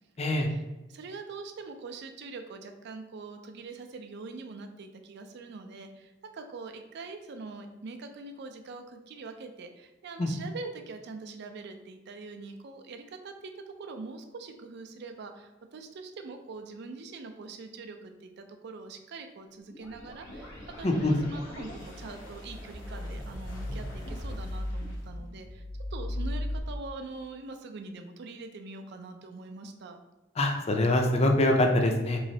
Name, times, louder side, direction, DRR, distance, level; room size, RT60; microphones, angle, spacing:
voice 1, 0.2-0.5 10.2-10.3 20.8-21.1 30.4-32.2, left 1 dB, 35° left, 3 dB, 0.4 m, -24 dB
voice 2, 0.9-25.6 25.9-30.0, right 3 dB, 60° right, 6 dB, 0.4 m, -43 dB
sound 1, 19.7-26.6, left 1 dB, 85° left, 0.8 m, -37 dB
3.9 x 3.1 x 2.7 m, 1.0 s
head